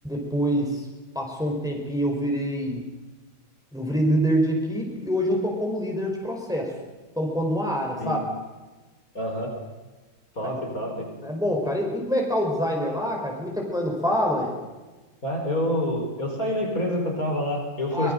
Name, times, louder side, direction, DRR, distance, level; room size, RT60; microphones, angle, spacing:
voice 1, 0.0-0.8 1.1-2.8 3.7-6.7 7.1-8.2 10.4-10.5 11.2-14.5 17.9-18.1, equal, ahead, 0 dB, 4.9 m, -25 dB
voice 2, 9.1-9.5 10.3-11.1 15.2-18.1, left 1 dB, 45° left, 1 dB, 4.9 m, -27 dB
24.5 x 21.0 x 6.6 m, 1.2 s
omnidirectional pair, 2.1 m